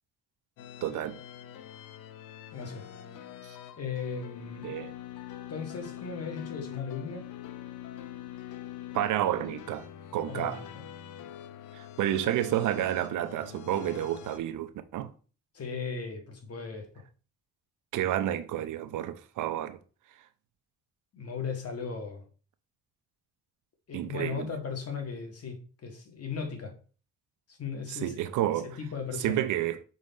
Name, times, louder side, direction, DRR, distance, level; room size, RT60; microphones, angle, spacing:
sound 1, 0.6-14.4, left 11 dB, 85° left, 0.7 m, -44 dB
voice 1, 0.8-1.2 3.4-3.6 4.6-4.9 8.9-9.9 10.1-10.6 11.7-15.1 17.9-19.8 23.9-24.5 27.9-28.8 29.2-29.8, right 12 dB, 80° right, 0.7 m, -30 dB
voice 2, 2.5-2.9 3.8-4.7 5.5-7.3 10.3-10.8 15.5-16.9 21.1-22.2 23.9-26.7 27.5-28.1 28.6-29.5, left 5 dB, 55° left, 1.7 m, -37 dB
6.2 x 4.1 x 4.1 m
cardioid pair, 90°, 30 cm